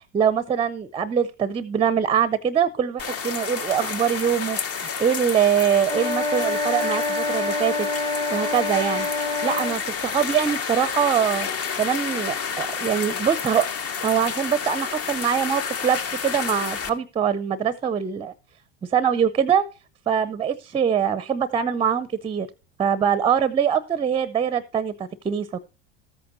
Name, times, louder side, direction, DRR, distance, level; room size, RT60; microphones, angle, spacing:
voice 1, 0.0-7.9 8.3-9.1 9.4-11.5 11.8-13.7 14.0-18.3 18.8-19.6 20.1-22.5 22.8-25.6, right 8 dB, 15° right, 17 dB, 0.5 m, -23 dB
sound 1, 3.0-16.9, left 6 dB, 40° left, 1.0 m, -30 dB
sound 2, 5.8-9.8, left 2 dB, 15° left, 1.0 m, -26 dB
13.5 x 8.6 x 2.6 m, 0.31 s
hypercardioid pair, 80°, 36 cm